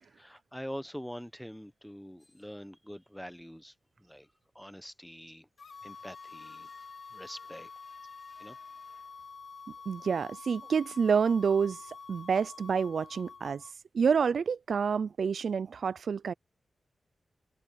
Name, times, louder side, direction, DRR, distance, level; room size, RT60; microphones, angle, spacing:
voice 1, 0.0-4.3 4.5-5.5 5.8-6.7 7.1-7.7 8.0-8.1 8.4-8.6, equal, ahead, 0.8 m, -45 dB
sound 1, 2.2-2.9 5.8-9.7, left 2 dB, 20° left, 6.8 m, -63 dB
sound 2, 5.6-13.7, left 5 dB, 55° left, 2.2 m, -48 dB
voice 2, 9.9-11.8 12.1-13.6 13.9-16.3, right 6 dB, 65° right, 0.3 m, -28 dB
wide cardioid pair, 145°, 0 cm